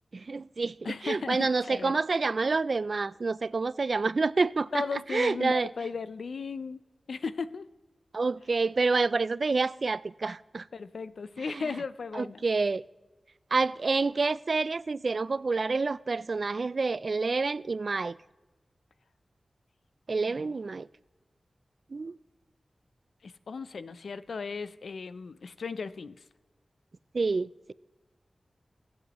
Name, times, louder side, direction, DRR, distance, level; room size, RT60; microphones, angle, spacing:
voice 1, 0.1-4.8 5.1-5.7 8.1-10.6 11.5-11.6 12.1-12.8 13.5-18.2 20.1-20.9 21.9-22.2 27.1-27.7, right 4 dB, 60° right, 0.3 m, -28 dB
voice 2, 0.8-2.0 4.7-6.8 7.1-7.6 10.7-12.4 20.2-20.5 23.2-26.2, left 5 dB, 85° left, 0.4 m, -36 dB
23.0 x 8.0 x 3.0 m
wide cardioid pair, 65°, 0 cm